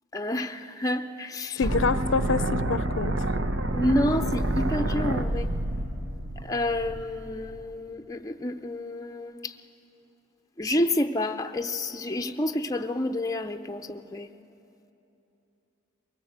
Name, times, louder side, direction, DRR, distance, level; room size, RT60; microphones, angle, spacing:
voice 1, 0.1-0.5 0.8-1.5 3.7-5.5 6.5-9.4 10.6-14.3, left 1 dB, 20° left, 6 dB, 0.6 m, -29 dB
voice 2, 1.6-3.3, left 5 dB, 70° left, 15 dB, 0.5 m, -27 dB
sound 1, 1.6-7.6, right 1 dB, 70° right, 1.0 m, -28 dB
23.0 x 19.0 x 7.9 m, 2.9 s
head